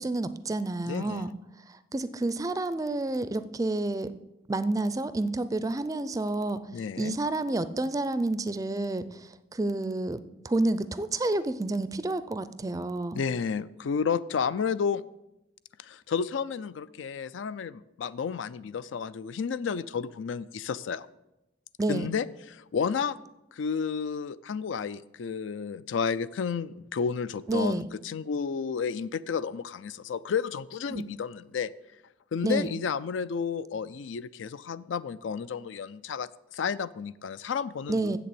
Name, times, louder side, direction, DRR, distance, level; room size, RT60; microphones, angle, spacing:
voice 1, 0.0-1.3 1.7-4.1 4.5-6.6 7.0-13.2 21.8-22.1 27.5-27.9 30.9-31.0 32.4-32.7 37.9-38.2, right 2 dB, 20° right, 13 dB, 0.4 m, -29 dB
voice 2, 0.8-1.3 6.7-7.2 13.1-15.0 15.8-21.1 21.9-23.2 23.5-31.7 32.3-38.2, left 6 dB, 90° left, 16 dB, 0.4 m, -31 dB
7.8 x 6.8 x 7.7 m, 0.93 s
head